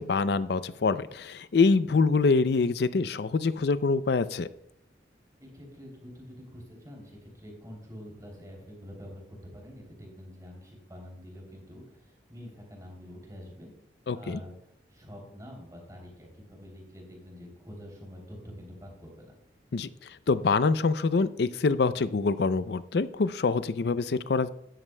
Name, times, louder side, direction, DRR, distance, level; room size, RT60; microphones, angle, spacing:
voice 1, 0.0-4.5 14.1-14.4 19.7-19.9 20.3-24.5, left 4 dB, 65° left, 14 dB, 0.4 m, -25 dB
voice 2, 5.4-13.7 14.1-19.4, equal, 20° right, 0 dB, 3.0 m, -46 dB
12.5 x 11.0 x 2.2 m, 0.77 s
head